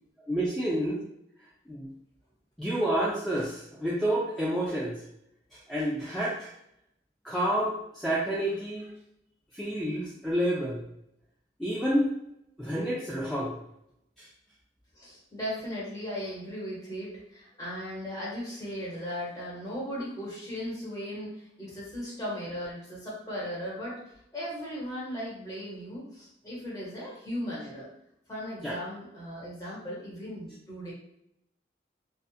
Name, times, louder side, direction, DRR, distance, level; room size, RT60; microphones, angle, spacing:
voice 1, 0.3-1.0 1.7-1.9 2.6-5.0 5.5-6.5 7.2-8.9 9.5-10.8 11.6-12.1 12.6-13.6 14.2-14.3 28.6-28.8, right 1 dB, ahead, -7 dB, 0.3 m, -29 dB
voice 2, 14.9-24.0 24.3-27.9 28.3-30.9, equal, 20° left, -7 dB, 1.0 m, -37 dB
2.7 x 2.3 x 2.4 m, 0.78 s
head